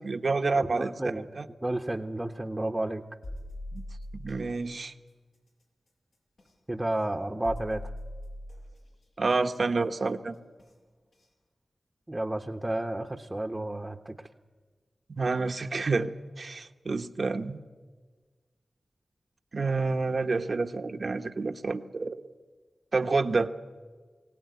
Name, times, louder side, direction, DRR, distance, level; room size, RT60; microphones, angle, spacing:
voice 1, 0.0-1.5 3.7-3.8 4.2-4.9 9.2-10.4 15.2-16.1 16.4-17.6 19.5-22.2 22.9-23.5, right 3 dB, 55° right, 8 dB, 1.1 m, -28 dB
voice 2, 0.6-1.3 1.6-3.0 6.7-7.8 12.1-14.3, right 1 dB, 20° right, 4 dB, 1.0 m, -31 dB
sound 1, 3.2-4.5 6.4-6.5 7.4-8.8 10.6-10.7 11.2-11.3, left 1 dB, 80° left, 6.2 m, -40 dB
23.0 x 17.0 x 9.5 m, 1.4 s
wide cardioid pair, 80°, 0 cm